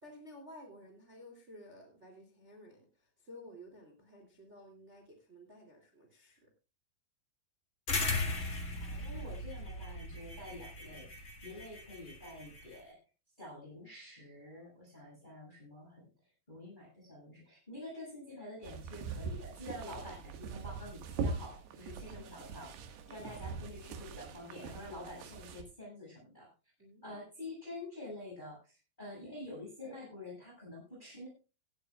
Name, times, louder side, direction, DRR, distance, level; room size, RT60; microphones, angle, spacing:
voice 1, 0.0-6.5 23.1-23.3 26.8-27.2, equal, 20° right, 3 dB, 2.5 m, -54 dB
sound 1, 7.9-12.8, left 2 dB, 50° left, 0.9 m, -38 dB
voice 2, 8.8-13.0 13.4-16.1 16.5-22.7 23.1-26.5 27.0-31.3, left 1 dB, 10° left, -3 dB, 6.9 m, -48 dB
sound 2, 18.6-25.6, right 4 dB, 80° right, 3.8 m, -42 dB
18.0 x 12.5 x 2.3 m, 0.32 s
omnidirectional pair, 4.8 m